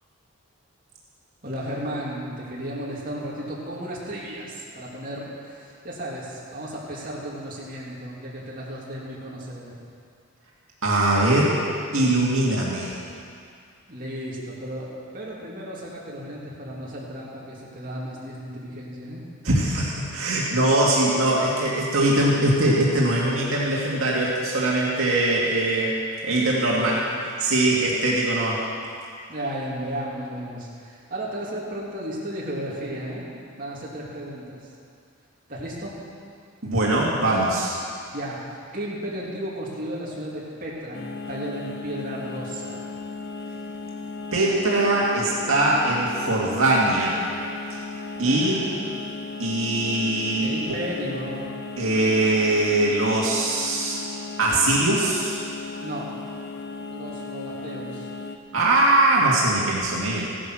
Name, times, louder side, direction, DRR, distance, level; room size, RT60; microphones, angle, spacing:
voice 1, 1.4-9.8 13.9-19.2 26.4-27.1 29.3-33.3 33.6-34.7 35.5-36.0 38.1-42.9 48.1-48.9 50.4-51.4 55.8-56.1 56.9-58.1, equal, 40° right, -6 dB, 2.9 m, -34 dB
voice 2, 10.8-11.5 11.9-13.0 19.4-25.9 26.2-27.0 27.4-28.6 36.6-37.7 44.3-47.2 47.7-47.8 48.2-48.6 49.4-50.5 51.8-54.0 54.4-55.4 58.5-60.3, right 2 dB, 70° right, -5 dB, 2.1 m, -21 dB
sound 1, 40.9-58.4, left 4 dB, 50° left, 0.8 m, -36 dB
15.5 x 11.0 x 6.3 m, 2.3 s
head